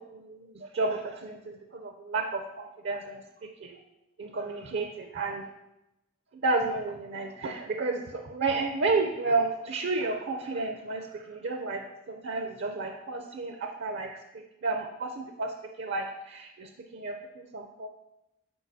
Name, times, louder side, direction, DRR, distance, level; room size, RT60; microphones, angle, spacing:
voice 1, 0.1-3.2 3.6-3.8 4.2-5.5 6.4-11.8 12.1-14.1 14.3-17.9, right 3 dB, 60° right, 4 dB, 0.5 m, -31 dB
8.4 x 4.8 x 2.7 m, 0.92 s
head